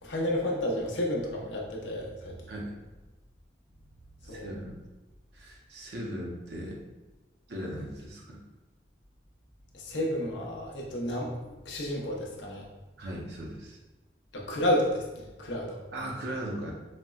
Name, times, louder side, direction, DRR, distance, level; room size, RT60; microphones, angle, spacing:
voice 1, 0.0-2.3 4.3-4.5 9.7-12.6 14.3-15.8, left 1 dB, 80° left, -2 dB, 0.6 m, -31 dB
voice 2, 4.2-4.7 5.3-6.8 7.5-8.4 13.0-13.8 15.9-16.7, right 1 dB, 65° right, -2 dB, 0.6 m, -38 dB
4.1 x 2.0 x 2.3 m, 1.1 s
head